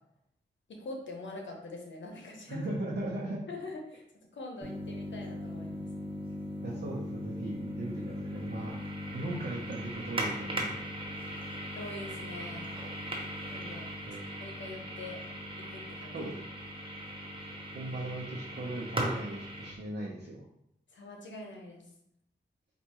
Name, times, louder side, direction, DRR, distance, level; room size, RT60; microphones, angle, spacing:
voice 1, 0.7-2.7 3.5-4.0 4.3-5.9 11.7-12.7 13.5-13.8 14.4-15.2 15.6-16.3 20.9-21.8, left 2 dB, 80° left, 1 dB, 0.8 m, -44 dB
voice 2, 2.5-3.4 6.6-8.8 9.1-10.7 14.1-14.3 16.1-16.3 17.7-20.4, right 2 dB, 65° right, -5 dB, 0.8 m, -38 dB
sound 1, 4.6-19.7, equal, 30° right, 0.9 m, -38 dB
4.6 x 2.5 x 3.0 m, 0.74 s
cardioid pair, 45°, 19 cm